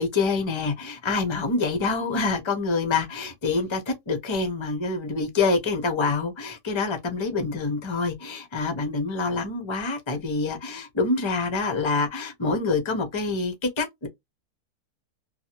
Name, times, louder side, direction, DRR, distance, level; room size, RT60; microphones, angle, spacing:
voice 1, 0.0-14.1, left 4 dB, 35° left, 0.4 m, -26 dB
2.7 x 2.4 x 2.8 m
omnidirectional pair, 1.7 m